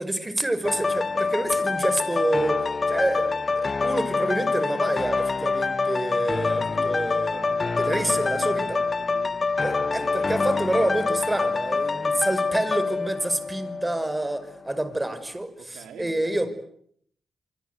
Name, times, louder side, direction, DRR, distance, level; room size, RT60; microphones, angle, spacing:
voice 1, 0.0-2.6 2.9-7.4 7.8-8.8 9.6-16.5, right 1 dB, 15° right, 12 dB, 5.7 m, -28 dB
sound 1, 0.6-14.4 14.8-14.9, left 4 dB, 40° left, 1.1 m, -26 dB
voice 2, 7.3-10.3 15.6-16.5, right 6 dB, 85° right, 7 dB, 2.8 m, -45 dB
27.0 x 25.0 x 8.2 m, 0.68 s
supercardioid pair, 50°, 0 cm